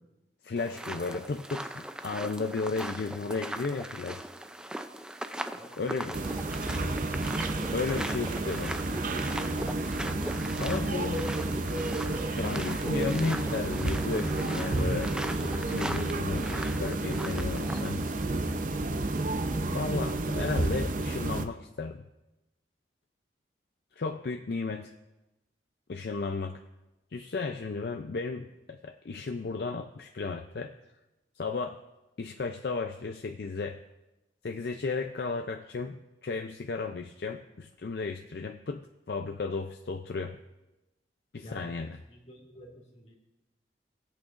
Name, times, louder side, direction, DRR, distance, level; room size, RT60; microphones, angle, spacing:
voice 1, 0.4-4.3 5.8-6.2 7.7-8.7 10.6-11.2 12.2-18.0 19.6-22.0 23.9-24.9 25.9-26.6 27.1-30.7 31.4-31.8 32.2-33.8 34.4-40.4 41.3-42.0, left 4 dB, 60° left, 5 dB, 0.5 m, -34 dB
sound 1, 0.6-18.2, right 1 dB, 5° right, 0.4 m, -40 dB
sound 2, 6.1-21.5, right 2 dB, 45° right, 0.6 m, -31 dB
voice 2, 10.7-11.5 12.3-12.6 14.2-14.4 41.4-41.7 42.1-43.2, equal, 35° left, -1 dB, 2.1 m, -47 dB
19.5 x 8.5 x 2.5 m, 1.0 s
head